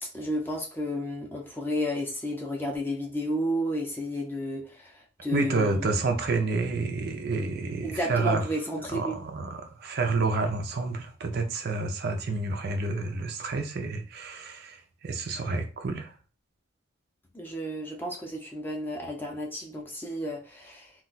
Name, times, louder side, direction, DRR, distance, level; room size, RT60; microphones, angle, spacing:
voice 1, 0.0-6.0 7.8-9.2 17.3-20.9, equal, 10° left, 0.5 m, -32 dB
voice 2, 5.3-8.5 8.9-16.1, right 3 dB, 50° right, 0.4 m, -29 dB
2.3 x 2.2 x 3.9 m
head